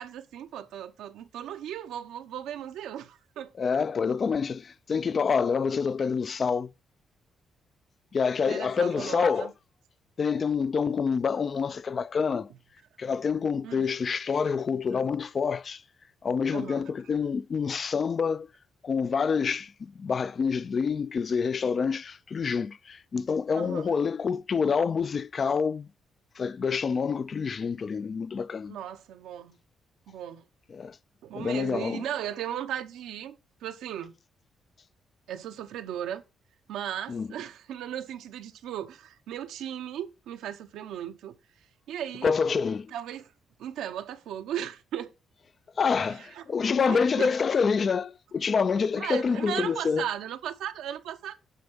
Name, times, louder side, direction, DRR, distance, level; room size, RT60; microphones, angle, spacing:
voice 1, 0.0-3.5 8.5-9.5 13.6-13.9 16.5-16.9 23.6-23.9 28.7-29.6 30.1-30.4 31.2-33.4 33.6-34.1 35.3-36.2 36.7-41.3 41.9-42.3 42.9-43.3 43.6-45.1 46.1-46.4 46.8-47.3 49.0-51.4, right 10 dB, 90° right, 0.8 m, -36 dB
voice 2, 3.6-6.7 8.1-9.5 10.2-12.5 13.0-15.8 16.2-18.5 18.8-25.9 26.4-28.8 30.7-31.0 31.3-32.0 37.1-37.3 42.2-42.9 45.8-50.1, left 5 dB, 45° left, 0.3 m, -27 dB
8.5 x 3.5 x 5.3 m
cardioid pair, 95°, 0 cm